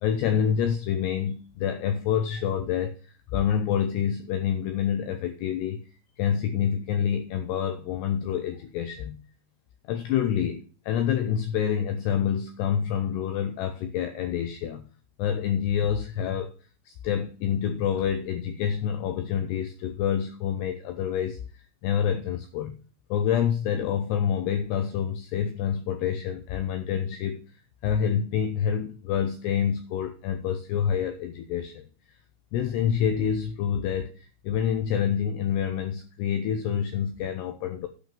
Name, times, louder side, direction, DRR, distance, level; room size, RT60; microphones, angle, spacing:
voice 1, 0.0-5.9 6.2-9.2 9.9-14.8 15.2-16.5 16.9-21.4 21.8-22.8 23.1-27.4 27.8-31.8 32.5-37.9, left 8 dB, 85° left, 8 dB, 2.4 m, -27 dB
8.8 x 5.5 x 6.7 m, 0.37 s
omnidirectional pair, 5.7 m